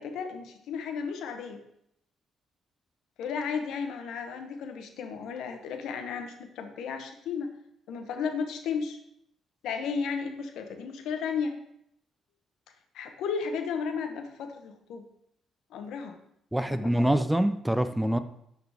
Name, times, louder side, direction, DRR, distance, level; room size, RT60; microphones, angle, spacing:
voice 1, 0.0-1.6 3.2-7.5 7.9-9.0 9.6-11.6 12.9-15.0 15.7-16.2 16.7-17.0, left 6 dB, 85° left, 6 dB, 0.9 m, -34 dB
voice 2, 16.5-18.2, right 1 dB, 5° right, 10 dB, 0.5 m, -25 dB
11.5 x 3.9 x 3.5 m, 0.75 s
cardioid pair, 90°, 0 cm